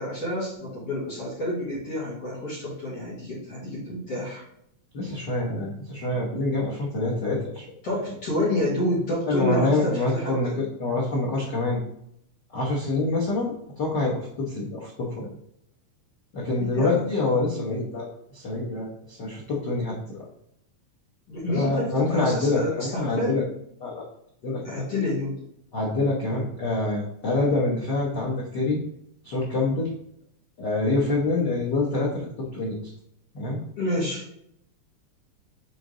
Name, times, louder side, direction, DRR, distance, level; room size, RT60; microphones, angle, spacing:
voice 1, 0.0-4.4 7.8-10.5 16.6-17.0 21.3-23.4 24.6-25.3 33.8-34.2, left 1 dB, 50° left, -7 dB, 2.7 m, -28 dB
voice 2, 4.9-7.6 9.3-11.8 12.5-15.3 16.3-20.2 21.5-23.4 23.8-24.0 24.4-24.8 25.7-28.8 29.2-29.9 30.6-32.8 33.3-33.6, left 2 dB, 85° left, -4 dB, 0.9 m, -26 dB
6.8 x 3.9 x 3.8 m, 0.73 s
omnidirectional pair, 3.9 m